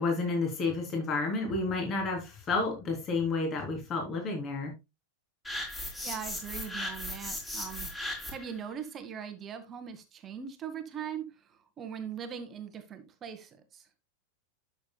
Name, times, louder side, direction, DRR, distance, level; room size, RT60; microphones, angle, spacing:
voice 1, 0.0-4.7, left 3 dB, 30° left, 3.5 m, -30 dB
sound 1, 5.4-8.5, left 1 dB, 10° left, 4.3 m, -37 dB
voice 2, 6.0-7.9 8.3-13.9, right 8 dB, 25° right, 1.4 m, -41 dB
12.0 x 7.0 x 2.3 m
figure-of-eight pair, 90°, 0 cm